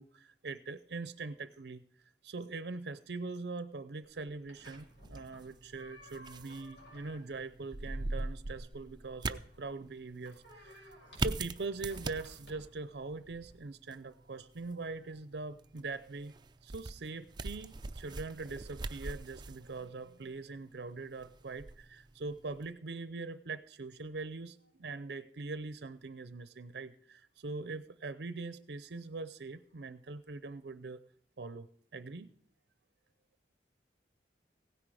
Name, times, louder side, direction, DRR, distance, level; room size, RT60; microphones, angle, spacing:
voice 1, 0.0-1.8 2.2-16.4 16.6-31.0 31.4-32.3, right 3 dB, 70° right, 13 dB, 0.6 m, -42 dB
sound 1, 4.0-13.6, left 1 dB, 85° left, 5.8 m, -57 dB
sound 2, 4.6-22.7, right 3 dB, 25° right, 0.5 m, -43 dB
16.5 x 10.0 x 4.9 m, 0.63 s
head